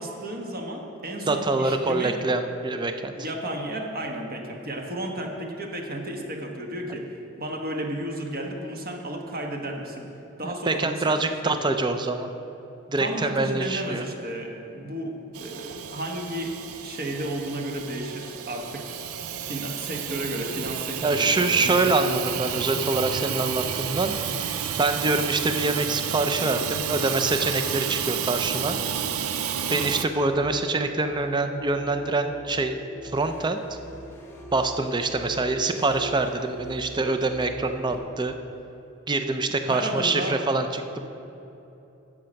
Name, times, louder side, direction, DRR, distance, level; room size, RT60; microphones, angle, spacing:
voice 1, 0.0-2.2 3.1-10.1 10.4-11.5 13.0-18.9 19.4-22.3 39.7-40.4, right 1 dB, 45° right, 1 dB, 1.2 m, -33 dB
voice 2, 1.3-3.1 10.4-12.3 12.9-14.0 21.0-24.2 24.8-28.8 29.7-32.8 33.0-33.6 34.5-38.3 39.1-41.1, right 3 dB, 20° right, 7 dB, 0.5 m, -25 dB
Hiss / Toilet flush / Trickle dribble, 15.3-30.1, right 8 dB, 90° right, 0.5 m, -31 dB
sound 1, 30.3-38.0, right 2 dB, 10° left, 1.0 m, -42 dB
10.5 x 7.6 x 5.3 m, 2.9 s
head